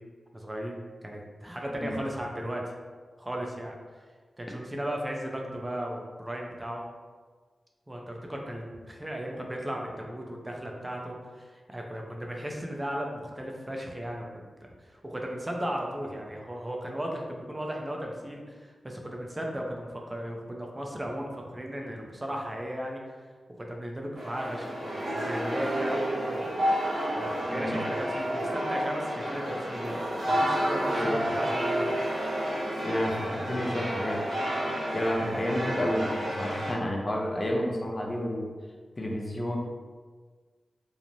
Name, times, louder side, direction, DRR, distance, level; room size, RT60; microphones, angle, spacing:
voice 1, 0.3-2.7 3.2-3.7 4.4-6.8 7.9-14.5 14.8-23.0 23.6-26.6 27.1-31.9, equal, 20° right, 0 dB, 0.5 m, -36 dB
sound 1, 24.2-36.7, equal, 75° right, 0.8 m, -30 dB
voice 2, 30.9-31.2 32.8-34.2 34.9-38.5 39.0-39.6, equal, 35° left, -1 dB, 0.5 m, -30 dB
3.1 x 2.0 x 2.6 m, 1.5 s
cardioid pair, 60°, 0 cm